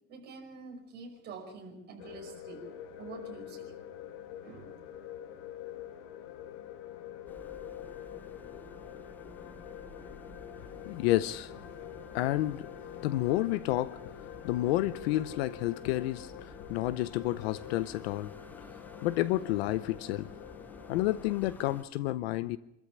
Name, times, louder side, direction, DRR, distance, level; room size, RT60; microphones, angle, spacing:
voice 1, 0.1-2.7 3.0-3.7 4.4-4.8, right 4 dB, 25° right, 1 dB, 5.4 m, -46 dB
sound 1, 2.0-21.4, left 10 dB, 35° left, 1.7 m, -46 dB
sound 2, 7.3-21.8, left 1 dB, 5° left, 0.8 m, -52 dB
voice 2, 10.9-11.5 12.1-12.7 13.0-14.0 14.4-18.3 19.0-20.3 20.9-22.6, left 16 dB, 50° left, 16 dB, 0.7 m, -30 dB
27.0 x 13.5 x 7.3 m, 0.87 s
supercardioid pair, 170°, 40 cm